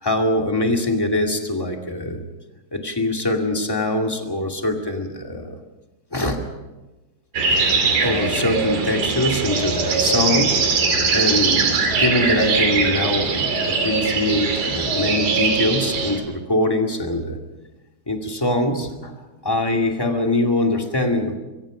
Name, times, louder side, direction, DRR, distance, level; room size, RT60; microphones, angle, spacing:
voice 1, 0.0-2.2 2.7-5.6 6.1-6.4 8.0-10.6 11.1-17.4 18.1-19.1 19.4-21.4, left 1 dB, 10° left, 2 dB, 1.3 m, -23 dB
sound 1, 7.3-16.2, right 4 dB, 65° right, 4.3 m, -21 dB
26.0 x 23.0 x 5.1 m, 1.1 s
omnidirectional pair, 4.2 m